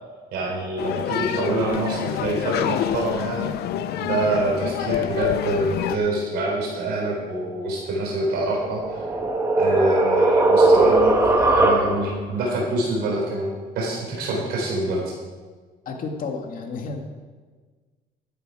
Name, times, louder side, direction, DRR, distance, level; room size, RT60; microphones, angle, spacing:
voice 1, 0.3-3.5 4.0-9.0 9.6-15.0, right 2 dB, 75° right, -3 dB, 4.0 m, -25 dB
sound 1, 0.8-6.0, left 11 dB, 75° left, 0.7 m, -27 dB
sound 2, 8.5-12.2, right 2 dB, 15° right, 1.7 m, -19 dB
voice 2, 15.9-17.0, left 4 dB, 55° left, 3 dB, 2.1 m, -31 dB
12.5 x 11.0 x 4.8 m, 1.4 s
cardioid pair, 110°, 17 cm